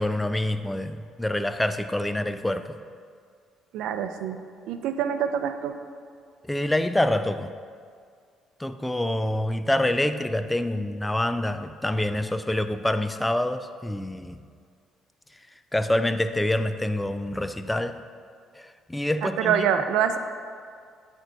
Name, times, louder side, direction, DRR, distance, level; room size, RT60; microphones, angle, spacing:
voice 1, 0.0-2.8 6.4-7.5 8.6-14.4 15.7-18.0 18.6-19.6, left 1 dB, 5° left, 10 dB, 0.3 m, -26 dB
voice 2, 3.7-4.4 4.7-5.7 19.2-20.2, right 8 dB, 85° right, 8 dB, 0.5 m, -25 dB
12.5 x 4.5 x 3.9 m, 2.1 s
cardioid pair, 155°, 0 cm